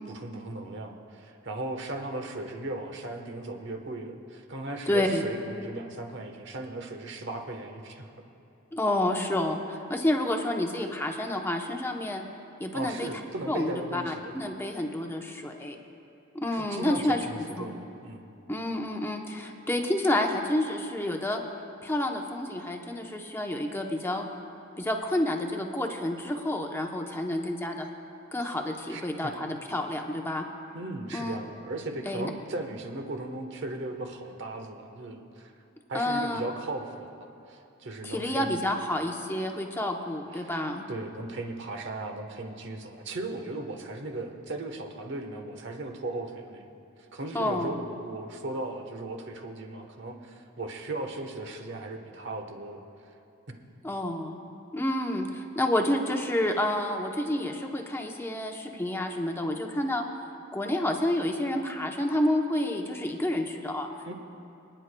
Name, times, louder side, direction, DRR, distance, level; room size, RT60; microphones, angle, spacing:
voice 1, 0.1-8.1 12.7-14.2 16.5-18.3 28.9-29.3 30.7-35.5 35.9-38.6 40.3-40.6 40.9-46.7 47.1-52.8 64.1-64.2, right 2 dB, 55° right, 4 dB, 1.1 m, -37 dB
voice 2, 4.9-5.2 8.7-12.2 12.6-13.1 13.5-15.8 16.3-17.2 17.6-17.7 18.5-21.4 21.8-24.2 24.8-27.9 28.3-30.4 31.1-31.4 32.1-32.3 35.9-36.4 38.0-40.9 47.3-47.8 53.8-54.4 54.7-60.0 60.5-63.9, left 1 dB, 10° left, 3 dB, 0.8 m, -29 dB
28.5 x 10.0 x 2.2 m, 2.8 s
head